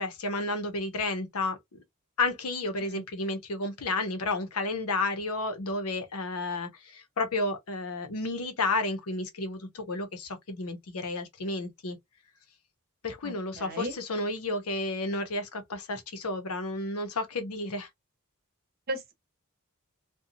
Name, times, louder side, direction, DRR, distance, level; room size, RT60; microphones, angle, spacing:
voice 1, 0.0-1.6 2.2-12.0 13.0-17.9, left 2 dB, 85° left, 0.7 m, -31 dB
voice 2, 13.2-13.9 18.9-19.1, right 1 dB, 45° right, 0.9 m, -35 dB
2.5 x 2.2 x 2.6 m
head